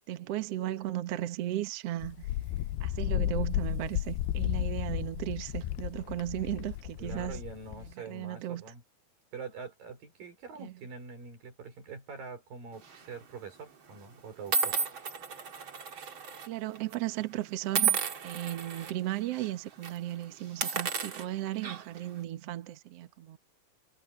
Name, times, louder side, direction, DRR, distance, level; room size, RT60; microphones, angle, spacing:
voice 1, 0.1-2.3 2.8-7.4 7.7-8.6 10.6-10.7 16.5-23.4, right 14 dB, 85° right, 1.3 m, -36 dB
Wind, 2.0-7.9, left 14 dB, 80° left, 2.5 m, -33 dB
voice 2, 7.0-8.8 9.3-14.8, right 5 dB, 60° right, 6.5 m, -44 dB
sound 1, 12.8-13.1 13.9-14.0 14.5-16.5 16.7-16.9 17.7-18.9 19.3-19.5 19.8-20.0 20.5-22.0, right 6 dB, 40° right, 2.1 m, -32 dB
omnidirectional pair, 4.6 m